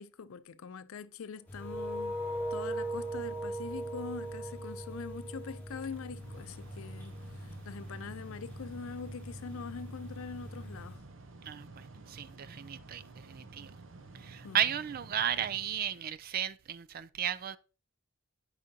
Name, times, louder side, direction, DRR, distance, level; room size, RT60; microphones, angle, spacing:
voice 1, 0.0-2.2 2.5-11.0 14.4-14.7, left 5 dB, 90° left, 0.5 m, -43 dB
sound 1, 1.5-11.0, left 1 dB, 10° left, 1.3 m, -46 dB
sound 2, 1.6-6.4, right 1 dB, 30° right, 3.0 m, -38 dB
Mechanical fan, 5.7-16.3, right 3 dB, 65° right, 0.8 m, -51 dB
voice 2, 11.4-13.7 14.2-17.6, right 9 dB, 45° right, 0.4 m, -34 dB
8.7 x 4.9 x 2.8 m
head